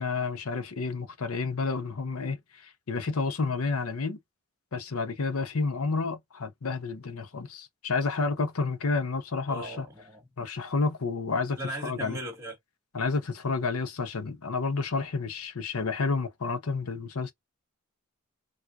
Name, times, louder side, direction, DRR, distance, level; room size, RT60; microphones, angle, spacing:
voice 1, 0.0-4.2 4.7-9.8 10.4-12.2 12.9-17.3, left 4 dB, 85° left, 0.8 m, -30 dB
voice 2, 9.5-10.3 11.6-12.6, right 1 dB, 15° right, 1.9 m, -37 dB
4.6 x 2.5 x 2.4 m
head